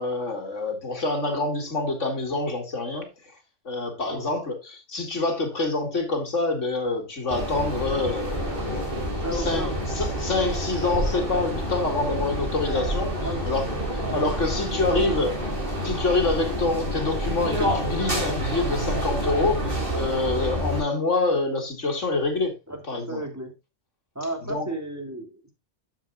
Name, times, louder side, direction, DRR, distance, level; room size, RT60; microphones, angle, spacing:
voice 1, 0.0-3.3 3.6-9.7 9.9-15.3 15.8-22.5 22.9-23.2 24.4-24.7, left 3 dB, 85° left, 2.8 m, -27 dB
sound 1, 7.3-20.8, equal, 45° right, 3.8 m, -28 dB
voice 2, 9.2-9.8 13.1-13.5 13.8-14.2 14.9-15.2 22.7-23.5 24.1-25.5, right 1 dB, 15° right, 2.4 m, -34 dB
12.0 x 7.7 x 2.4 m
omnidirectional pair, 1.2 m